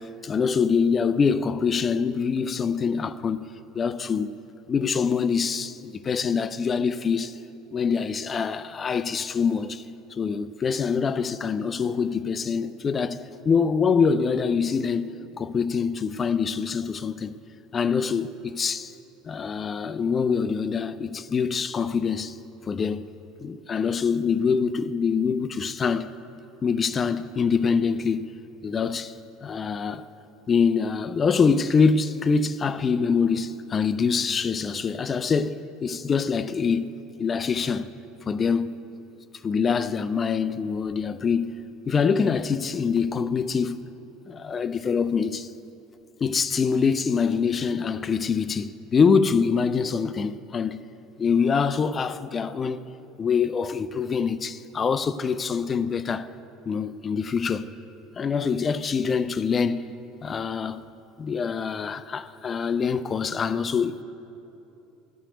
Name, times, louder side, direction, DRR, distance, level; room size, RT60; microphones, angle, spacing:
voice 1, 0.2-3.5 3.7-4.3 4.7-7.4 7.7-9.8 10.1-17.4 17.7-18.9 19.3-22.4 22.7-23.1 23.4-26.1 26.6-28.3 28.6-29.1 29.4-30.1 30.5-36.9 37.2-37.9 38.3-38.7 39.4-41.5 41.9-43.9 44.3-45.5 46.2-50.8 51.2-52.8 53.2-56.3 56.7-57.7 58.2-59.9 60.2-60.8 61.2-64.0, left 5 dB, 30° left, 0.4 m, -25 dB
12.5 x 5.8 x 7.9 m
hypercardioid pair, 70°, 0 cm